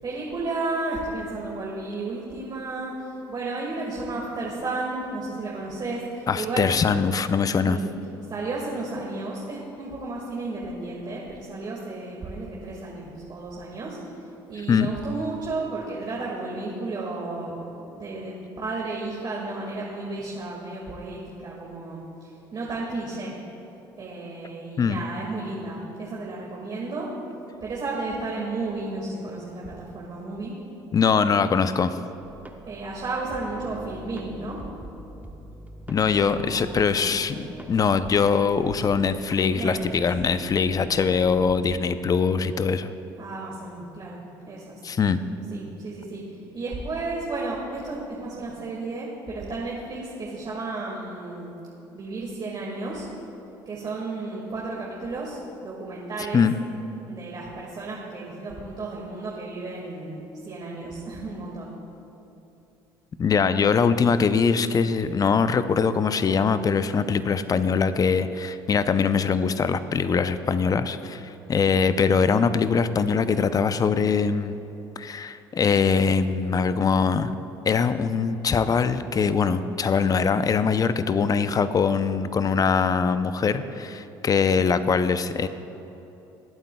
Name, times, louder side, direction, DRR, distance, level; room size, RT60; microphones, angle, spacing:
voice 1, 0.0-2.9 3.3-6.7 7.7-7.9 8.3-14.0 14.5-22.0 22.5-23.3 24.0-27.1 27.6-30.5 32.6-34.6 36.3-37.1 39.5-40.0 43.2-44.8 45.5-46.2 46.5-51.5 51.9-53.0 53.7-56.4 57.0-61.7, right 3 dB, 40° right, -4 dB, 1.9 m, -33 dB
voice 2, 6.3-7.8 14.7-14.9 24.8-25.0 30.9-32.0 35.9-42.9 44.8-45.2 56.2-56.5 63.2-74.6 75.0-77.3 77.7-85.5, left 5 dB, 35° left, 12 dB, 0.5 m, -22 dB
sound 1, 32.2-41.9, right 2 dB, 15° right, 1.0 m, -43 dB
19.5 x 9.0 x 2.3 m, 2.9 s
hypercardioid pair, 70°, 11 cm